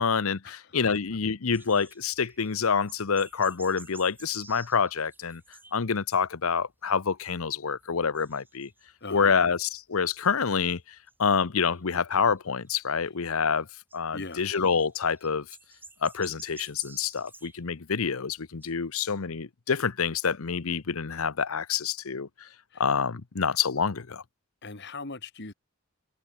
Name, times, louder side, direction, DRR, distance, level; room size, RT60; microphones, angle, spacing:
voice 1, 0.0-5.4 5.7-8.7 9.1-10.8 11.2-13.7 13.9-15.4 16.0-22.3 22.8-24.2, left 6 dB, 75° left, 0.8 m, -27 dB
sound 1, 1.5-5.9 6.2-6.7 7.1-7.5 7.8-10.8 11.1-11.2 11.7-12.7 13.9-17.6 17.9-18.0 18.4-18.7, right 3 dB, 10° right, 5.4 m, -52 dB
voice 2, 9.0-9.4 14.1-14.7 22.7-22.8 24.6-25.5, left 3 dB, 50° left, 1.9 m, -40 dB
head